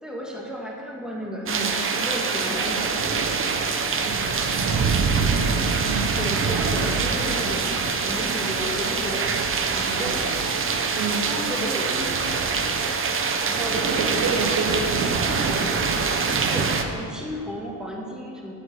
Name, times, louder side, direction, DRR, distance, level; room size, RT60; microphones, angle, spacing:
voice 1, 0.0-3.4 6.2-7.7 8.0-9.3 9.7-10.3 11.3-12.5 13.5-14.4 14.8-15.8 16.5-18.5, equal, ahead, -2 dB, 1.9 m, -34 dB
sound 1, 1.5-16.8, right 5 dB, 30° right, 0.9 m, -24 dB
voice 2, 3.9-5.2 5.8-6.2 9.9-10.1 10.7-11.8 12.3-12.6 13.6-15.1, right 4 dB, 80° right, 1 dB, 2.3 m, -31 dB
15.0 x 8.1 x 6.1 m, 2.7 s
cardioid pair, 150°, 41 cm